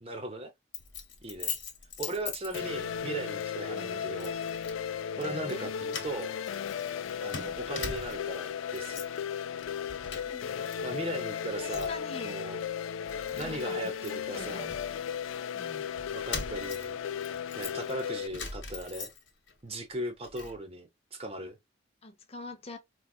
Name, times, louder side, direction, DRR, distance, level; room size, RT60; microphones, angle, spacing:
voice 1, 0.0-0.5 1.2-1.6 2.0-4.4 5.2-6.3 7.2-9.0 10.8-12.0 12.2-12.6 13.4-14.8 16.1-17.0 17.6-19.1 19.6-21.6, right 1 dB, 30° right, 0.9 m, -38 dB
Keys jangling, 0.7-3.0 3.4-3.6 4.2-4.8 5.1-5.6 5.9-8.4 8.7-9.2 9.5-10.7 11.0-12.1 12.6-12.7 13.0-15.4 16.0-19.5 19.9-20.6, left 5 dB, 65° left, 1.2 m, -42 dB
sound 1, 2.5-18.3, left 7 dB, 90° left, 0.4 m, -35 dB
voice 2, 5.1-5.7 7.2-7.6 10.2-10.6 11.6-12.3 13.3-14.7 15.5-15.9 22.0-22.8, left 2 dB, 30° left, 0.6 m, -45 dB
4.7 x 2.3 x 2.4 m
head